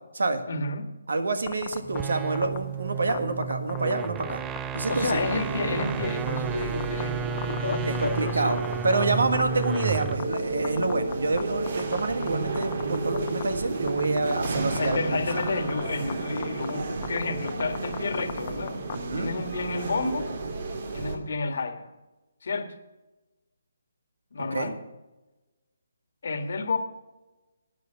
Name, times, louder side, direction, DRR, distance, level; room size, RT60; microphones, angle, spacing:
voice 1, 0.5-0.9 4.9-8.6 14.7-18.8 19.2-20.3 20.9-21.9 22.4-22.7 24.3-24.8 26.2-26.8, left 3 dB, 60° left, 7 dB, 1.7 m, -30 dB
voice 2, 1.1-4.4 4.7-5.2 7.8-8.6 8.8-15.2 18.9-19.3 24.5-24.7, right 3 dB, 75° right, 9 dB, 1.6 m, -27 dB
sound 1, 1.5-2.0 2.3-2.6 3.1-4.3 4.6-4.8 5.2-5.4 5.8-5.9 6.3-7.0 7.4-10.4 10.6-11.4 11.7-12.3 12.6-13.4 13.9-14.5 14.8-15.0 15.3-15.8 16.1-16.2 16.4-16.7 17.0-17.2 17.5-18.9, left 12 dB, 35° left, 1.0 m, -34 dB
sound 2, 1.8-10.3, right 7 dB, 15° right, 0.4 m, -33 dB
sound 3, 4.9-21.2, right 3 dB, 55° right, 2.1 m, -32 dB
12.0 x 9.3 x 5.8 m, 1.1 s
figure-of-eight pair, 150°, 0 cm